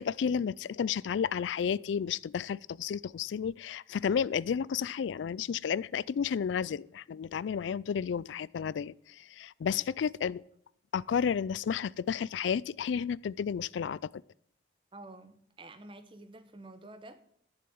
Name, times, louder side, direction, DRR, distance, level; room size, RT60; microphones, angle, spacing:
voice 1, 0.0-10.4 10.9-14.1, left 7 dB, 80° left, 0.3 m, -32 dB
voice 2, 14.9-17.2, right 2 dB, 25° right, 0.9 m, -49 dB
11.0 x 6.9 x 7.0 m
head